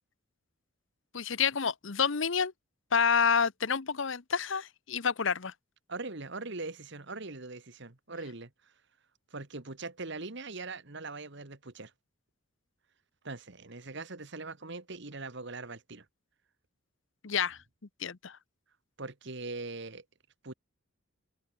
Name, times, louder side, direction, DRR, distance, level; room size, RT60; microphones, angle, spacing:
voice 1, 1.1-2.5 2.9-5.5 17.2-17.6 18.0-18.4, left 6 dB, 60° left, 0.9 m, -28 dB
voice 2, 5.9-8.7 9.3-11.9 13.2-16.1 19.0-20.0 20.4-20.5, right 3 dB, 55° right, 1.6 m, -41 dB
open air
head